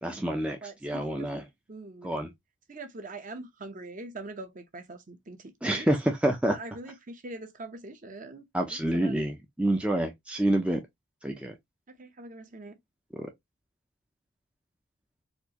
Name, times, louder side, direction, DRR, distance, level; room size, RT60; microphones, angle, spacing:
voice 1, 0.0-1.5 2.0-2.3 5.6-6.6 8.5-10.8 11.2-11.6 13.1-13.3, right 1 dB, 5° right, 0.4 m, -28 dB
voice 2, 0.6-1.3 1.7-2.1 2.7-5.9 6.5-8.4 8.9-9.2 11.3-11.4 12.0-12.8, right 2 dB, 35° right, 0.7 m, -42 dB
4.4 x 2.5 x 2.8 m
head